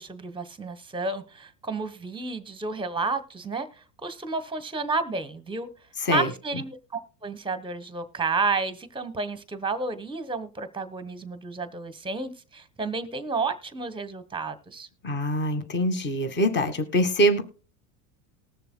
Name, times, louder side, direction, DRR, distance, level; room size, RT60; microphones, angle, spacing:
voice 1, 0.0-5.7 6.1-14.9, right 3 dB, 10° right, 11 dB, 1.1 m, -31 dB
voice 2, 15.0-17.4, equal, 20° left, 10 dB, 1.4 m, -24 dB
20.0 x 6.8 x 2.2 m, 0.36 s
supercardioid pair, 105°, 49 cm